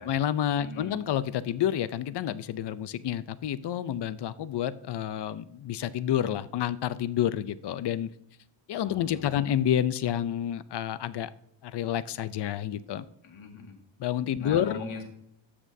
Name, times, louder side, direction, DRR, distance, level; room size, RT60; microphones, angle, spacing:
voice 1, 0.0-8.1 8.7-11.3 11.6-13.0 14.0-14.8, left 10 dB, 55° left, 16 dB, 0.6 m, -29 dB
voice 2, 0.6-1.0 8.8-9.4 13.2-13.8 14.4-15.0, left 5 dB, 75° left, 4 dB, 2.0 m, -40 dB
13.5 x 6.1 x 2.7 m, 0.74 s
wide cardioid pair, 120°, 49 cm